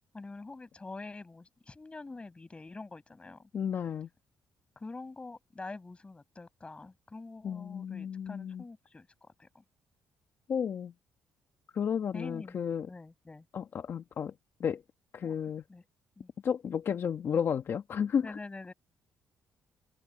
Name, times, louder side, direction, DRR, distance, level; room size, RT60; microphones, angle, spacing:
voice 1, 0.1-3.5 4.8-9.6 12.1-13.5 15.2-15.3 15.7-15.8 16.2-16.3 18.2-18.7, left 3 dB, 20° left, 6.4 m, -46 dB
voice 2, 3.5-4.1 7.4-8.6 10.5-10.9 11.7-12.9 13.5-14.3 14.6-14.8 15.1-15.6 16.4-18.3, left 7 dB, 50° left, 1.3 m, -32 dB
cardioid pair, 90°, 5 cm